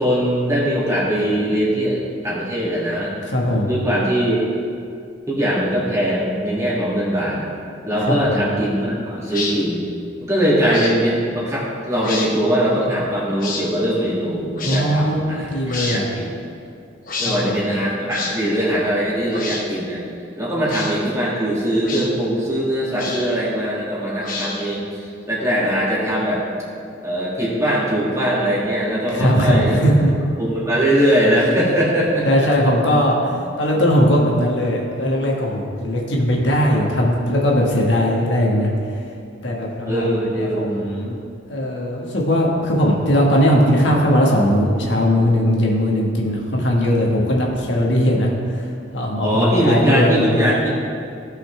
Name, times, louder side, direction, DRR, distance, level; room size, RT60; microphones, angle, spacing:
voice 1, 0.0-3.1 3.7-4.4 5.3-7.5 7.8-9.9 10.2-16.3 17.2-20.0 20.4-26.4 27.0-29.8 30.4-32.3 39.9-40.7 49.2-50.7, equal, 15° right, -7 dB, 2.3 m, -21 dB
voice 2, 3.2-3.7 8.0-8.4 14.6-16.0 17.2-17.6 29.1-30.1 32.2-39.0 39.4-41.2 41.5-50.6, equal, 75° left, -2 dB, 1.5 m, -19 dB
sound 1, 9.3-9.6 10.6-11.0 12.0-12.3 13.4-13.6 14.6-14.8 15.7-16.0 17.0-17.4 18.1-18.4 19.3-19.6 20.6-20.9 21.8-22.1 22.9-23.4 24.2-24.7, left 4 dB, 50° left, 1.2 m, -28 dB
16.5 x 5.6 x 3.3 m, 2.4 s
head